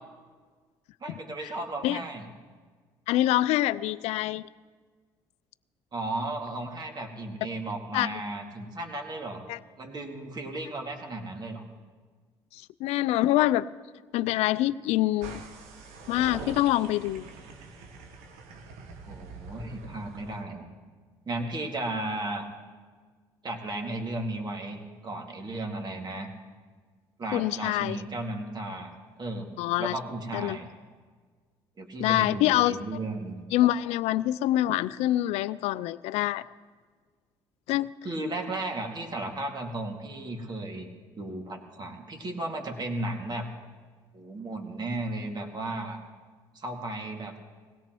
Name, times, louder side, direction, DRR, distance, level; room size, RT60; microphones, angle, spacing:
voice 1, 1.0-2.3 5.9-9.5 9.8-11.7 19.1-20.7 21.3-22.5 23.4-26.3 27.2-29.5 29.8-30.7 31.8-33.4 38.0-40.9 41.2-43.5 44.1-46.0 46.5-47.4, right 2 dB, 40° right, 2 dB, 2.3 m, -35 dB
voice 2, 3.1-4.5 7.9-8.1 9.5-9.6 12.5-13.7 14.1-15.4 16.1-17.3 27.3-28.0 29.6-29.9 30.3-30.6 32.0-32.8 33.5-36.4 37.7-37.9, left 15 dB, 70° left, 15 dB, 0.4 m, -25 dB
sound 1, 15.2-20.4, right 3 dB, 80° right, 1.2 m, -44 dB
20.5 x 17.0 x 3.1 m, 1.5 s
hypercardioid pair, 65°, 11 cm